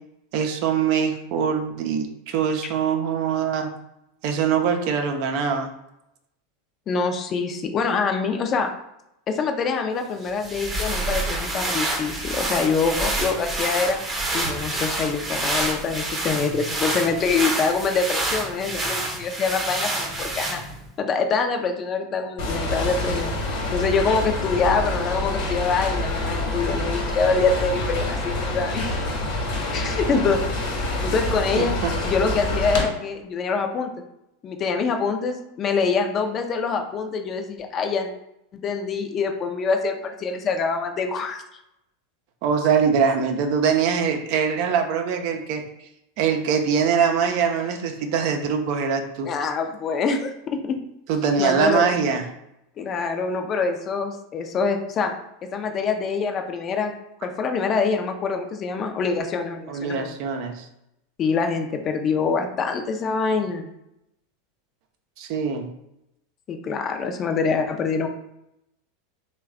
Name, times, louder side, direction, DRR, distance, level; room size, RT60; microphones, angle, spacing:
voice 1, 0.3-3.7 4.2-5.7 31.6-31.9 42.4-45.6 46.2-49.3 51.1-52.2 59.7-60.7 65.2-65.7, right 6 dB, 55° right, 4 dB, 0.5 m, -23 dB
voice 2, 6.9-8.7 9.3-14.0 14.3-20.6 21.0-23.3 23.7-29.1 29.7-30.4 31.0-31.7 32.0-33.9 34.4-38.1 38.5-41.4 49.2-50.8 51.4-51.9 52.8-55.1 55.5-56.9 57.2-60.2 61.2-63.7 66.5-68.1, left 4 dB, 35° left, 5 dB, 0.5 m, -25 dB
sound 1, 10.2-20.9, right 2 dB, 20° right, 0.8 m, -28 dB
sound 2, 22.4-32.8, left 2 dB, 55° left, 1.1 m, -27 dB
3.1 x 2.2 x 3.6 m, 0.84 s
hypercardioid pair, 90°, 0 cm